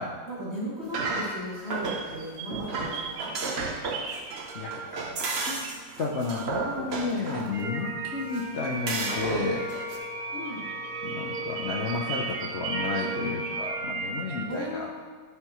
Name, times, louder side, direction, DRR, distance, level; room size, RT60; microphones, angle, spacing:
voice 1, 0.3-3.3 10.3-10.6 14.5-15.1, equal, 35° right, -8 dB, 2.4 m, -36 dB
sound 1, 0.8-2.2 2.5-7.5 8.3-8.4 8.9-10.0, right 3 dB, 60° right, 0.7 m, -33 dB
sound 2, 1.7-5.3 5.6-14.5, right 3 dB, 75° right, 1.5 m, -36 dB
voice 2, 3.8-4.2 4.5-5.6 6.0-9.6 11.0-14.9, left 4 dB, 70° left, -2 dB, 0.6 m, -32 dB
sound 3, 8.6-13.7, right 3 dB, 45° left, 2.8 m, -39 dB
11.5 x 5.9 x 3.0 m, 1.5 s
omnidirectional pair, 2.1 m